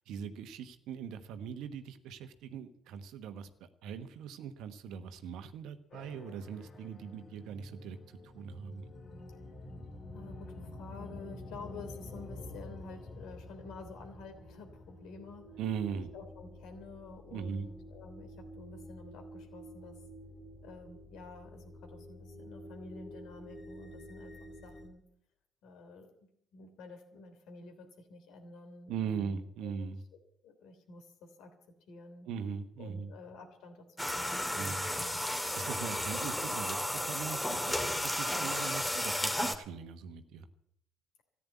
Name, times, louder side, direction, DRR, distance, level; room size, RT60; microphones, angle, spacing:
voice 1, 0.1-8.9 15.6-16.1 17.3-17.7 28.9-30.0 32.3-33.1 34.5-34.9 35.5-40.5, right 7 dB, 65° right, 10 dB, 1.2 m, -40 dB
sound 1, 5.9-24.9, left 1 dB, 45° left, 2.5 m, -49 dB
voice 2, 10.1-15.6 15.9-20.0 20.6-24.3 24.6-25.0 25.6-26.1 26.5-29.9 30.4-31.5 31.9-32.3 32.8-35.2, left 3 dB, 65° left, 5 dB, 3.1 m, -50 dB
sound 2, 34.0-39.5, left 1 dB, 10° left, 2.0 m, -33 dB
14.0 x 10.0 x 8.3 m, 0.72 s
hypercardioid pair, 60°, 0 cm